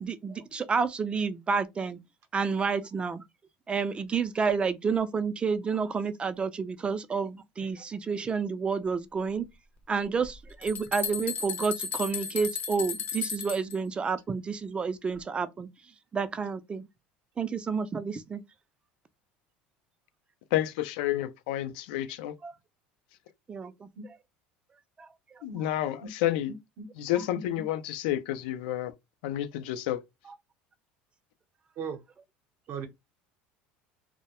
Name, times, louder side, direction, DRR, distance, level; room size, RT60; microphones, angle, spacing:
voice 1, 0.0-2.0 2.3-3.2 3.7-9.5 9.9-15.7 16.1-16.9 17.4-18.4 22.4-22.5 23.5-23.9 25.0-25.1 25.3-25.4, right 5 dB, 20° right, 0.4 m, -30 dB
sound 1, 10.2-13.7, left 5 dB, 40° left, 0.6 m, -34 dB
voice 2, 20.5-22.3 25.4-26.5 27.0-28.9 29.2-30.0, left 13 dB, 85° left, 0.4 m, -30 dB
voice 3, 26.5-26.9 27.1-27.6 31.8-32.0 32.7-32.9, right 5 dB, 55° right, 0.7 m, -39 dB
2.2 x 2.0 x 2.9 m
supercardioid pair, 105°, 5 cm